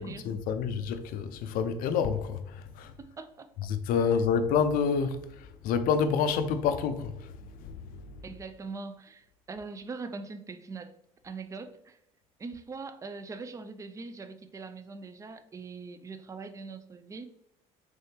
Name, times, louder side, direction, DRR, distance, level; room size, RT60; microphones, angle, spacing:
voice 1, 0.0-2.9 3.6-8.2, left 6 dB, 65° left, 0.4 m, -29 dB
voice 2, 2.8-3.5 8.2-10.9 11.2-12.0 12.4-17.3, right 4 dB, 20° right, 0.4 m, -42 dB
3.3 x 3.3 x 2.8 m
supercardioid pair, 75°, 16 cm